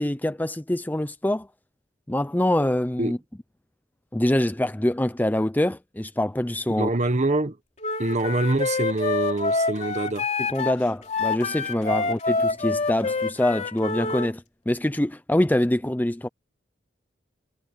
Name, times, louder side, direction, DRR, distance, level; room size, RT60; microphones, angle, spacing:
voice 1, 0.0-1.5 2.1-3.2 4.1-6.9 10.5-16.3, left 1 dB, 10° left, 0.5 m, -25 dB
voice 2, 6.7-7.6 8.0-10.3 11.9-12.1, right 2 dB, 40° right, 1.1 m, -25 dB
Wind instrument woodwind instrument, 7.8-14.3, left 3 dB, 40° left, 3.3 m, -27 dB
head